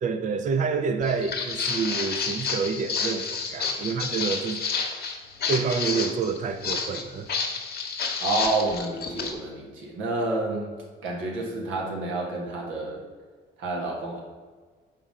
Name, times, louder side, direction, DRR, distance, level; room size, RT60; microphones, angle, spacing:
voice 1, 0.0-4.6 5.5-7.3, right 5 dB, 40° right, 0.4 m, -28 dB
Walk footsteps, 1.0-9.3, left 5 dB, 55° left, 0.9 m, -30 dB
voice 2, 8.2-10.7 11.0-13.0 13.6-14.2, right 2 dB, 90° right, 1.3 m, -29 dB
5.0 x 3.7 x 5.3 m
cardioid pair, 90°, 20 cm